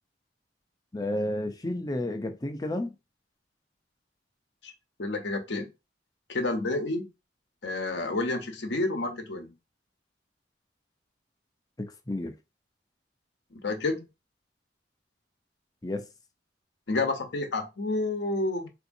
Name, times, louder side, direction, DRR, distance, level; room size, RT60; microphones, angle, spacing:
voice 1, 0.9-2.9 11.8-12.3 15.8-16.0, left 1 dB, 20° left, 0.5 m, -31 dB
voice 2, 5.0-5.7 6.3-7.1 7.6-9.5 13.5-14.0 16.9-18.7, left 2 dB, 75° left, 0.8 m, -29 dB
3.8 x 2.7 x 2.6 m
head